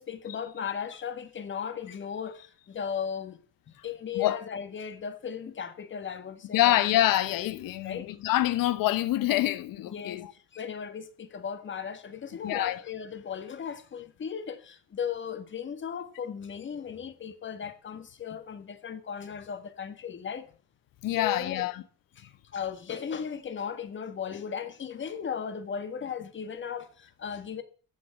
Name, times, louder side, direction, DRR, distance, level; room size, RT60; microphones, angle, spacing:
voice 1, 0.0-3.4 3.8-6.8 7.4-8.1 9.9-10.2 10.5-20.5 21.1-21.7 22.2-27.6, left 7 dB, 35° left, 1.6 m, -36 dB
voice 2, 6.5-10.3 12.4-12.8 21.0-21.8, left 14 dB, 80° left, 1.0 m, -26 dB
14.0 x 6.4 x 8.4 m
cardioid pair, 145°, 33 cm